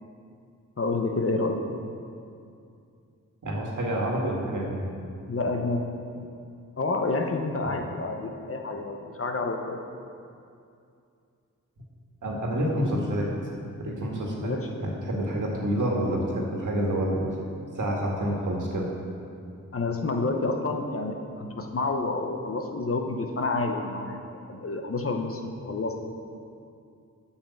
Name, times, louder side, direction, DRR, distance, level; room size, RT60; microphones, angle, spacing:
voice 1, 0.8-1.6 5.3-5.9 6.8-9.8 14.4-14.7 19.7-24.2 24.5-26.0, left 3 dB, 45° left, 3 dB, 1.1 m, -29 dB
voice 2, 3.4-4.9 12.2-13.3 13.8-14.5 14.8-17.3 17.8-18.9, right 1 dB, 75° right, -2 dB, 1.9 m, -28 dB
8.6 x 5.7 x 7.1 m, 2.5 s
cardioid pair, 55°, 31 cm